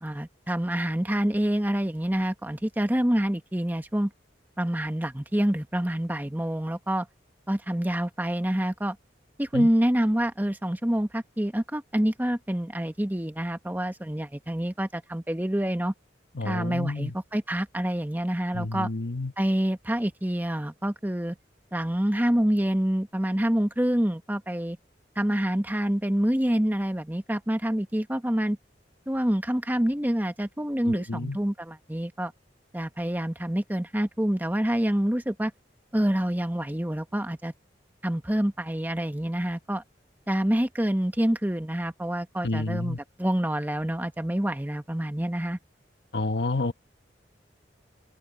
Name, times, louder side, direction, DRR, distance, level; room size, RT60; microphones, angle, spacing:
voice 1, 0.0-4.1 4.6-7.1 7.5-9.0 9.4-15.9 16.4-18.9 19.4-21.4 21.7-24.8 25.2-28.6 29.1-32.3 32.7-35.5 35.9-37.5 38.0-39.8 40.3-45.6, equal, 10° right, 1.0 m, -27 dB
voice 2, 16.3-17.1 18.5-19.3 30.8-31.4 42.4-43.0 46.1-46.7, left 2 dB, 70° left, 1.1 m, -29 dB
open air
head